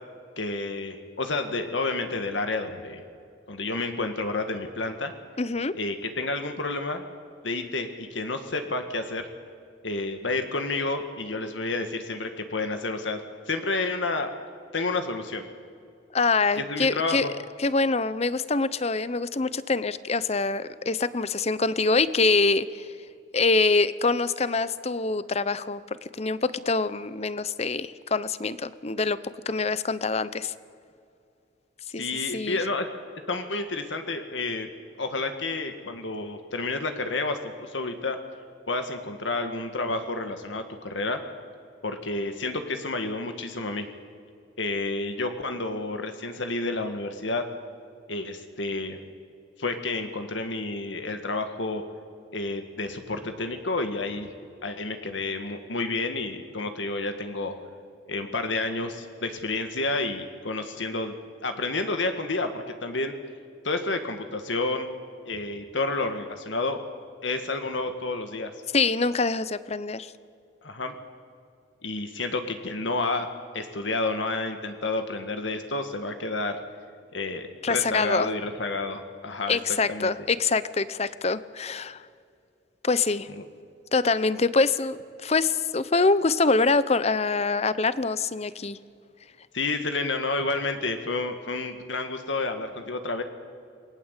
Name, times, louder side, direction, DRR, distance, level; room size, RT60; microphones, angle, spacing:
voice 1, 0.4-3.0 3.5-5.1 5.7-7.0 7.4-9.3 9.8-13.2 13.5-14.3 14.7-15.4 16.6-17.3 32.0-32.9 33.3-34.7 35.0-38.2 38.7-41.2 41.8-43.9 44.6-47.4 48.1-49.0 49.6-51.8 52.3-54.3 54.6-57.6 58.1-61.1 61.4-63.1 63.6-64.9 65.3-66.8 67.2-68.5 70.6-71.0 71.8-73.3 73.5-76.6 77.1-79.6 79.9-80.1 89.5-93.2, left 3 dB, 75° left, 6 dB, 1.8 m, -30 dB
voice 2, 5.4-5.7 16.1-17.3 17.6-22.8 23.3-25.8 26.2-29.2 29.5-30.5 31.9-32.1 32.3-32.6 68.7-70.1 77.6-78.3 79.5-82.0 82.8-83.3 83.9-88.8, left 3 dB, 35° left, 15 dB, 0.8 m, -25 dB
28.5 x 20.5 x 8.3 m, 2.5 s
head